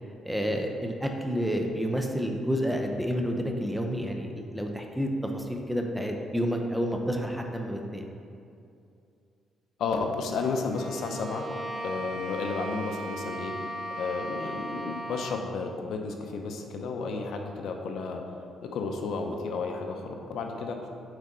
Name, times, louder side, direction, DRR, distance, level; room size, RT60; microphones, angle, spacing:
voice 1, 0.2-8.0, equal, 5° right, 2 dB, 0.7 m, -29 dB
voice 2, 9.8-11.4 11.8-18.2 18.6-20.8, left 4 dB, 75° left, 3 dB, 0.7 m, -32 dB
Bowed string instrument, 10.7-15.5, right 1 dB, 45° right, 0.6 m, -37 dB
8.0 x 4.2 x 3.8 m, 2.5 s
cardioid pair, 90°, 0 cm